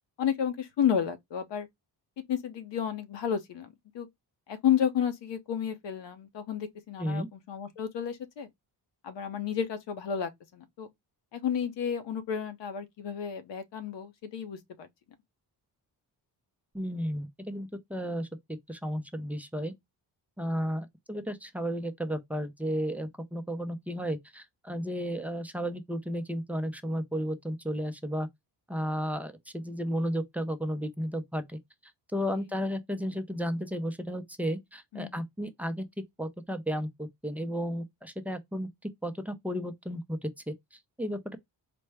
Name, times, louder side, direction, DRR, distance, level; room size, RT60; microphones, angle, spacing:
voice 1, 0.2-1.7 2.3-3.7 3.9-4.1 4.5-8.5 9.0-10.9 11.3-14.9 32.3-32.4 34.9-35.1, left 8 dB, 85° left, 0.9 m, -31 dB
voice 2, 16.7-18.3 18.7-19.7 20.4-28.3 28.7-31.6 32.1-38.7 39.0-41.4, equal, 5° right, 0.5 m, -33 dB
4.3 x 2.1 x 3.3 m
wide cardioid pair, 130°, 42 cm